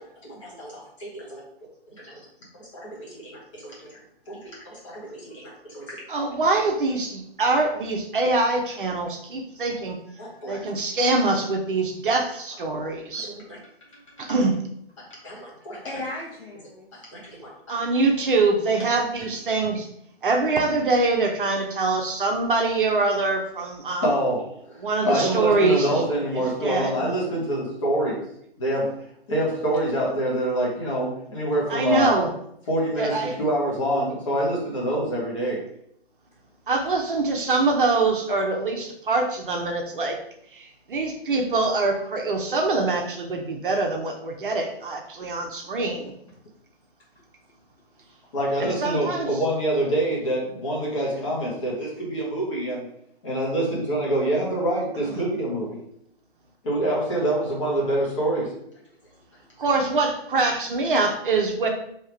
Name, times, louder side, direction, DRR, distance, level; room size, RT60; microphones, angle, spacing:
voice 1, 0.0-1.2 2.7-3.9 4.3-4.4 5.3-6.0 10.2-10.6 12.7-12.8 13.2-13.6 15.0-15.8 17.1-17.5 24.0-28.2 28.6-28.9 29.3-32.1 32.7-35.6 48.3-52.9 53.2-55.8 56.6-58.5, right 1 dB, 30° left, 1.2 m, -26 dB
voice 2, 6.1-10.0 10.5-13.3 14.2-14.6 17.7-19.9 20.2-24.2 24.8-26.0 26.3-27.0 31.7-32.3 33.0-33.3 36.7-40.2 40.5-46.1 48.6-49.5 55.1-55.2 59.6-61.7, right 3 dB, 55° right, 0.7 m, -24 dB
voice 3, 10.2-10.7 15.6-17.0, left 1 dB, 65° left, 1.3 m, -38 dB
3.5 x 2.8 x 4.4 m
hypercardioid pair, 160°, 32 cm